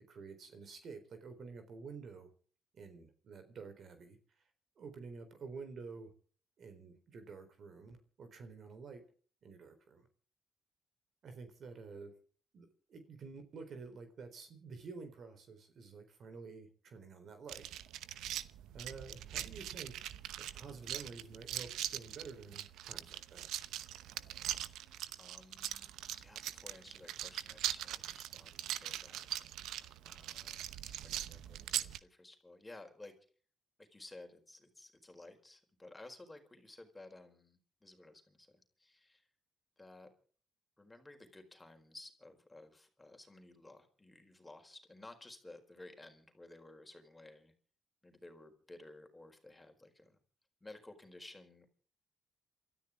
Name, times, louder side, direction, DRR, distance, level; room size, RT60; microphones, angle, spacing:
voice 1, 0.1-2.3 2.7-4.2 4.8-6.1 6.6-9.0 9.4-10.1 11.2-12.1 12.5-17.7 18.7-20.1 20.4-23.5, right 4 dB, 60° right, 8 dB, 4.0 m, -50 dB
sound 1, 17.5-32.0, right 12 dB, 85° right, 0.8 m, -42 dB
voice 2, 25.2-29.3 30.1-33.2 33.8-39.3 39.8-40.1 40.8-47.5 48.0-50.2 50.6-51.7, left 2 dB, 15° left, 5 dB, 4.5 m, -55 dB
28.0 x 13.5 x 3.7 m, 0.42 s
cardioid pair, 90°, 0 cm